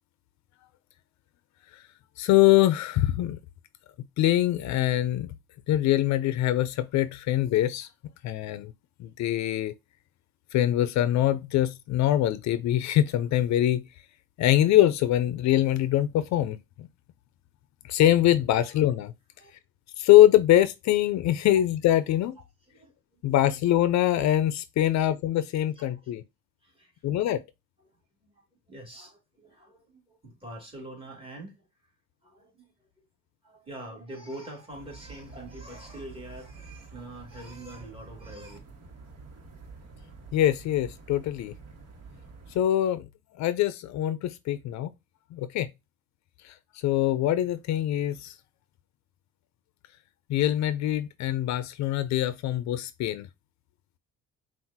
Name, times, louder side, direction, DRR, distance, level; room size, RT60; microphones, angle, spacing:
voice 1, 2.2-3.4 4.2-5.3 5.7-7.9 8.2-8.7 9.0-9.7 10.5-13.8 14.4-16.9 17.9-19.1 20.0-22.3 23.2-26.2 27.0-27.4 40.3-41.5 42.5-43.0 43.4-44.9 45.3-45.7 46.4-46.5 46.8-48.3 50.3-53.3, left 13 dB, 65° left, 0.5 m, -23 dB
voice 2, 22.7-23.6 24.9-25.1 25.7-26.1 26.6-27.1 27.8-28.4 28.7-31.7 32.2-32.7 33.4-38.6, right 1 dB, 20° right, 2.4 m, -45 dB
sound 1, 34.7-42.6, right 4 dB, 55° right, 1.4 m, -48 dB
5.8 x 2.5 x 2.7 m
cardioid pair, 100°, 30 cm